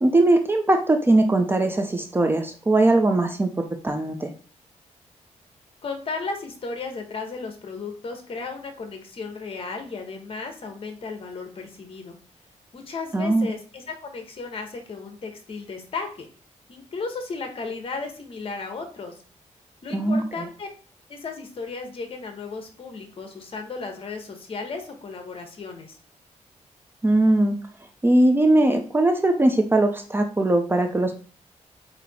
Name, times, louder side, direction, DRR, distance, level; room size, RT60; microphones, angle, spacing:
voice 1, 0.0-3.5 3.8-4.3 13.1-13.5 19.9-20.2 27.0-27.6 28.0-31.2, right 2 dB, 15° right, 5 dB, 0.6 m, -20 dB
voice 2, 5.8-12.2 12.7-16.3 16.7-19.1 19.8-20.7 21.1-26.0, left 4 dB, 45° left, 4 dB, 1.3 m, -35 dB
8.3 x 2.9 x 4.2 m, 0.40 s
wide cardioid pair, 160°, 13 cm